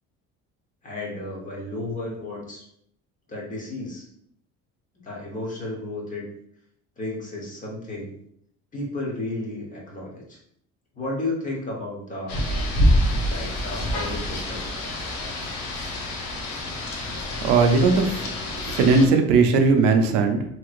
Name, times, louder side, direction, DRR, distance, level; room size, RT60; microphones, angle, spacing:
voice 1, 0.8-2.7 3.3-4.1 5.0-6.3 7.0-8.1 8.7-10.4 10.9-12.4 13.2-14.8, left 2 dB, 25° left, -3 dB, 1.1 m, -33 dB
Rain, 12.3-19.1, equal, 80° left, 0.8 m, -26 dB
voice 2, 17.4-18.3 18.6-20.5, right 4 dB, 85° right, 5 dB, 0.6 m, -18 dB
3.0 x 2.9 x 2.5 m, 0.70 s
cardioid pair, 125°, 30 cm